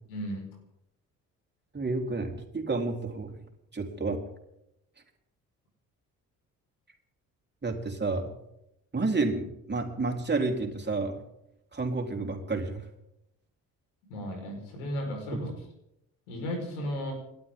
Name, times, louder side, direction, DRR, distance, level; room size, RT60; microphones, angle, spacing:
voice 1, 0.1-0.4 14.1-15.5 16.3-17.1, equal, 75° left, 3 dB, 5.1 m, -34 dB
voice 2, 1.7-3.3 3.7-4.2 7.6-8.3 8.9-11.2 11.7-12.9 15.3-15.4, right 3 dB, 25° right, 2 dB, 4.1 m, -30 dB
30.0 x 12.5 x 3.9 m, 0.82 s
figure-of-eight pair, 45°, 43 cm